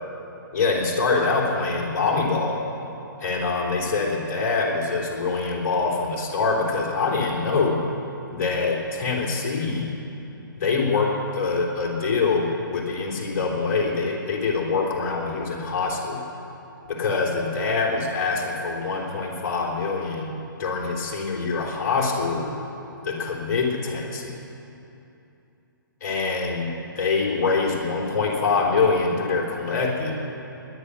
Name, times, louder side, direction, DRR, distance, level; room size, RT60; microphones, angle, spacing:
voice 1, 0.5-2.6 3.2-7.9 8.3-9.9 10.5-16.2 16.8-22.5 23.0-24.4 26.0-30.1, left 4 dB, 45° left, -2 dB, 3.7 m, -24 dB
20.5 x 10.0 x 6.4 m, 2.9 s
figure-of-eight pair, 130°, 12 cm